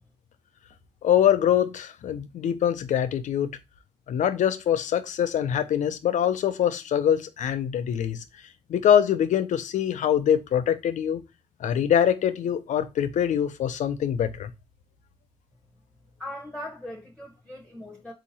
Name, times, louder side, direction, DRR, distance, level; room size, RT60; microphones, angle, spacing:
voice 1, 1.0-3.6 4.1-8.2 8.7-11.2 11.6-14.5, left 9 dB, 80° left, 0.5 m, -24 dB
voice 2, 16.2-18.1, left 1 dB, 5° left, 1.0 m, -39 dB
3.7 x 2.8 x 4.2 m
cardioid pair, 55°, 13 cm